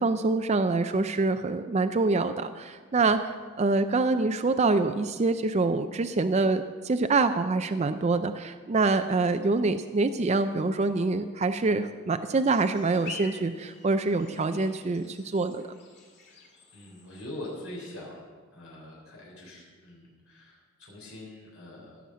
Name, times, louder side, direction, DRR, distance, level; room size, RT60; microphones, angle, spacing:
voice 1, 0.0-15.6, right 3 dB, 30° right, 8 dB, 0.4 m, -25 dB
sound 1, 12.5-17.6, left 4 dB, 55° left, 2.4 m, -47 dB
voice 2, 16.7-18.2 18.5-22.0, left 1 dB, 85° left, -4 dB, 3.6 m, -43 dB
16.0 x 7.2 x 6.2 m, 1.5 s
head